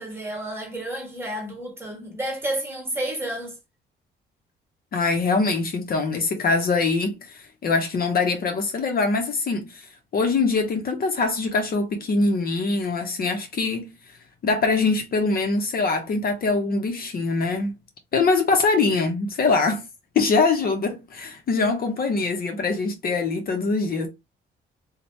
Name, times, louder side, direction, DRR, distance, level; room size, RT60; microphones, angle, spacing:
voice 1, 0.0-3.6, right 1 dB, 10° right, 1.4 m, -31 dB
voice 2, 4.9-13.9 14.4-17.8 18.1-19.9 20.2-24.1, left 3 dB, 50° left, 0.6 m, -23 dB
2.7 x 2.1 x 3.1 m
cardioid pair, 90°, 20 cm